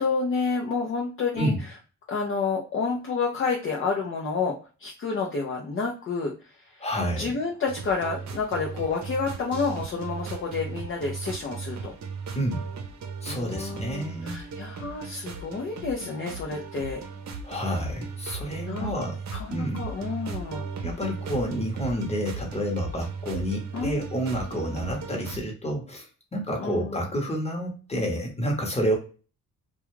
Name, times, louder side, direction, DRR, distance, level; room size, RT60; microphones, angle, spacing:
voice 1, 0.0-1.5 2.1-6.3 6.7-6.8 7.2-11.9 13.2-17.0 18.6-18.9 19.3-20.6 23.7-24.0 26.6-27.0, left 4 dB, 40° left, -1 dB, 0.6 m, -29 dB
voice 2, 6.8-7.3 12.3-12.7 13.2-14.5 17.4-19.2 19.5-19.8 20.8-29.0, equal, 20° left, 0 dB, 1.0 m, -29 dB
sound 1, 7.7-25.4, right 5 dB, 55° right, 0.7 m, -37 dB
2.3 x 2.3 x 3.0 m, 0.35 s
cardioid pair, 100°, 33 cm